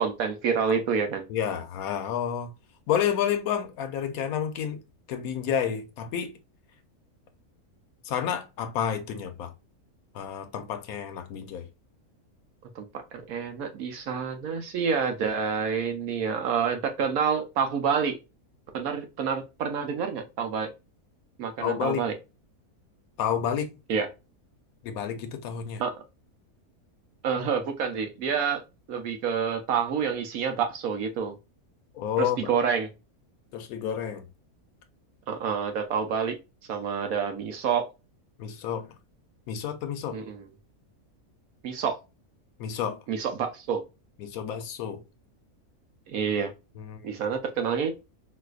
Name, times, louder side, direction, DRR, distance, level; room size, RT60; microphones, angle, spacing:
voice 1, 0.0-1.3 12.7-12.9 13.1-18.2 18.7-20.7 21.4-22.1 23.9-24.1 25.8-25.9 27.2-28.6 28.9-31.3 32.2-32.9 35.3-36.4 36.7-37.9 40.1-40.4 41.6-41.9 43.1-43.8 46.1-46.5 47.0-48.0, right 6 dB, 75° right, 1.1 m, -28 dB
voice 2, 1.3-2.5 2.9-4.8 5.1-6.3 8.0-9.5 10.1-11.7 21.6-22.1 23.2-23.8 24.8-25.8 31.9-32.5 33.5-34.3 38.4-38.9 39.5-40.2 42.6-43.0 44.2-45.0 46.8-47.1, left 8 dB, 75° left, 1.1 m, -30 dB
4.0 x 2.5 x 2.3 m
omnidirectional pair, 1.6 m